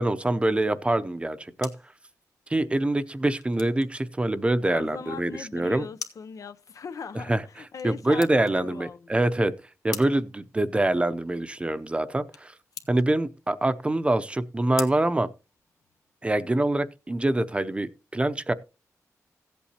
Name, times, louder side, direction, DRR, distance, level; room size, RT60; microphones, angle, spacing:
voice 1, 0.0-1.7 2.5-5.9 7.3-7.4 7.8-9.5 9.8-12.5 12.9-15.3 16.2-18.5, right 1 dB, 20° right, 0.7 m, -25 dB
sound 1, 1.4-16.1, left 6 dB, 90° left, 1.2 m, -46 dB
voice 2, 4.7-9.2, left 6 dB, 70° left, 0.6 m, -40 dB
16.0 x 8.5 x 2.9 m
wide cardioid pair, 105°, 6 cm